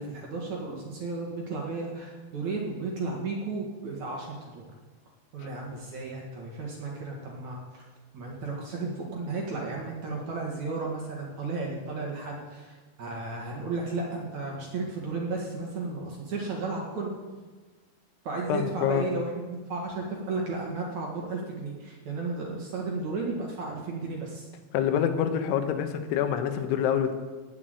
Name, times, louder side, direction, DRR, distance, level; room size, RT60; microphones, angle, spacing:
voice 1, 0.0-4.7 5.3-7.8 8.1-17.1 18.2-24.5, right 3 dB, 50° right, -1 dB, 2.6 m, -34 dB
voice 2, 18.5-19.1 24.7-27.1, left 9 dB, 90° left, 7 dB, 3.5 m, -26 dB
18.0 x 6.1 x 9.0 m, 1.3 s
omnidirectional pair, 5.4 m